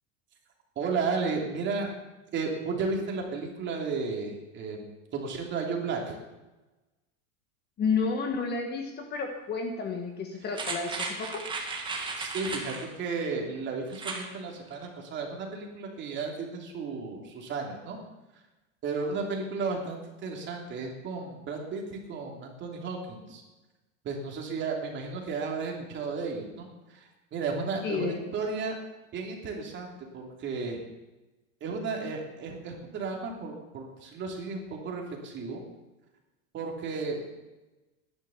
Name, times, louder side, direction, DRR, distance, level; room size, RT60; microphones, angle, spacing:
voice 1, 0.7-1.9 2.3-6.1 12.2-18.0 18.8-23.4 24.0-28.8 29.1-30.8 31.6-35.6 36.5-37.3, right 4 dB, 30° right, 1 dB, 3.0 m, -33 dB
voice 2, 7.8-11.5 27.8-28.2, left 5 dB, 25° left, 4 dB, 1.5 m, -31 dB
sound 1, 10.5-12.9 13.9-14.3 14.7-14.8, right 3 dB, 10° right, 1.9 m, -35 dB
14.5 x 11.0 x 7.2 m, 1.1 s
supercardioid pair, 160°, 39 cm